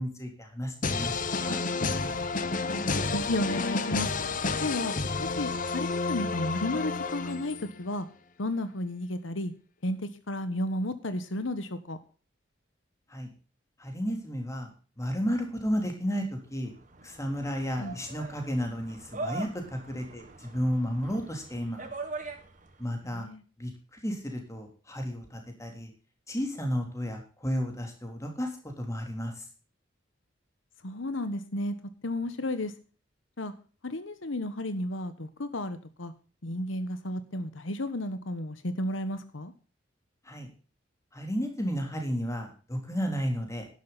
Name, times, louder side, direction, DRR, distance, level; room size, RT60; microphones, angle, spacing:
voice 1, 0.0-1.6 13.1-13.3 13.8-14.7 15.0-16.7 17.0-21.9 22.8-23.3 23.6-25.9 26.3-29.5 40.2-40.5 41.1-43.7, equal, 15° left, 3 dB, 3.3 m, -33 dB
sound 1, 0.8-7.8, left 4 dB, 45° left, 1.0 m, -30 dB
voice 2, 3.1-4.1 4.6-4.9 5.2-8.1 8.4-9.5 9.8-12.0 17.8-18.0 23.0-23.4 30.8-31.7 32.0-32.7 33.4-33.5 33.8-36.1 36.4-39.5, left 1 dB, 80° left, 11 dB, 1.2 m, -33 dB
sound 2, 16.5-22.9, right 3 dB, 40° right, 1.9 m, -42 dB
11.5 x 11.5 x 4.1 m, 0.37 s
head